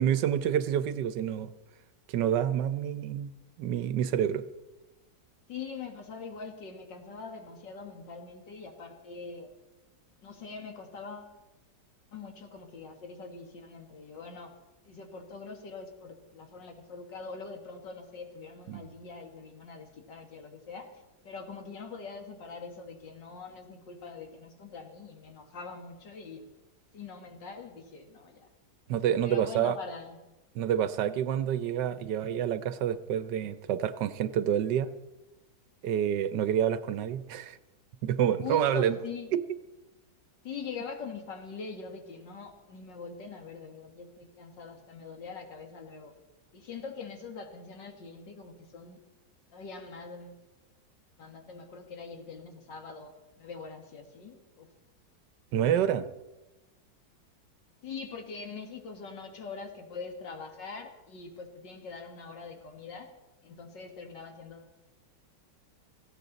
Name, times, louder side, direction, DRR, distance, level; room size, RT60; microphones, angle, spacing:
voice 1, 0.0-1.5 2.1-3.3 3.6-4.5 18.7-18.8 28.9-29.8 30.5-34.9 35.8-37.6 38.0-39.0 39.3-39.4 55.5-56.1, right 10 dB, 75° right, 14 dB, 1.2 m, -28 dB
voice 2, 5.5-9.5 10.2-11.3 12.1-14.5 14.9-20.9 21.2-26.5 26.9-28.5 29.2-30.2 38.4-39.3 40.4-46.1 46.5-49.0 49.5-50.4 51.2-54.7 57.8-63.1 63.4-64.7, left 5 dB, 70° left, 4 dB, 2.3 m, -43 dB
18.0 x 15.0 x 4.0 m, 1.1 s
omnidirectional pair, 2.0 m